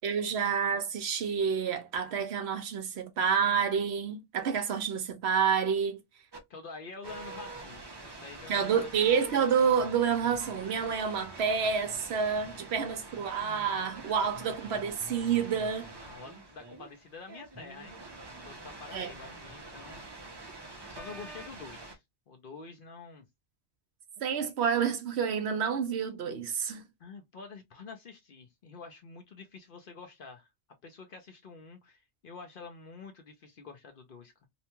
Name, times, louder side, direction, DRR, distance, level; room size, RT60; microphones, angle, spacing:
voice 1, 0.0-6.0 8.5-15.9 18.9-19.1 24.2-26.8, right 7 dB, 65° right, 0.8 m, -29 dB
sound 1, 6.3-6.4 7.0-21.9, right 2 dB, 45° right, 0.3 m, -46 dB
voice 2, 6.5-8.9 16.0-18.0 18.4-20.0 20.4-23.3 27.0-30.5 30.8-34.5, left 4 dB, 55° left, 0.7 m, -47 dB
2.7 x 2.2 x 2.8 m
omnidirectional pair, 1.2 m